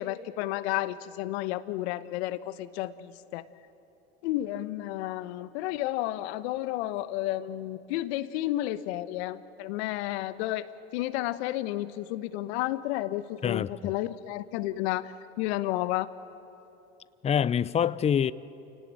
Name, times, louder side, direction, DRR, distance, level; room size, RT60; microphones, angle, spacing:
voice 1, 0.0-3.5 4.2-10.7 10.9-16.1, left 15 dB, 65° left, 1.2 m, -32 dB
voice 2, 13.4-13.9 17.2-18.3, left 8 dB, 20° left, 0.5 m, -26 dB
29.0 x 18.0 x 8.9 m
hypercardioid pair, 85°, 34 cm